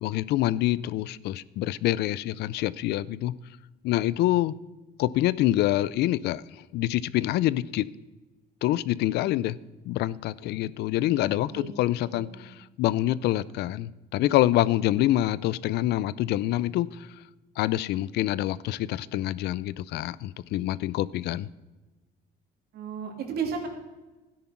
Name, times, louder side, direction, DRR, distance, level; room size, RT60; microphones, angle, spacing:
voice 1, 0.0-3.3 3.8-4.5 5.0-6.4 6.7-7.9 8.6-9.6 9.9-17.0 17.6-21.5, left 15 dB, 80° left, 20 dB, 0.5 m, -26 dB
voice 2, 11.3-11.7 12.0-12.5 22.7-23.6, right 6 dB, 70° right, 4 dB, 2.9 m, -34 dB
13.0 x 10.0 x 5.9 m, 1.1 s
cardioid pair, 110°, 17 cm